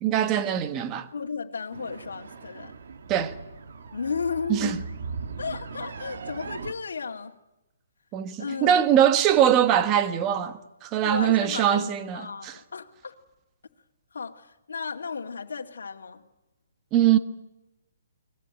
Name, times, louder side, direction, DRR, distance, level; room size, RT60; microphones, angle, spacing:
voice 1, 0.0-1.1 3.1-3.3 4.5-4.8 8.1-12.5 16.9-17.2, right 10 dB, 15° right, 1.1 m, -22 dB
voice 2, 1.1-2.8 3.9-4.8 5.4-7.3 8.4-8.8 11.0-13.1 14.1-16.2, left 5 dB, 90° left, 2.2 m, -34 dB
sound 1, 1.7-6.7, right 5 dB, 50° right, 1.8 m, -39 dB
29.5 x 21.5 x 9.1 m
hypercardioid pair, 175°, 0 cm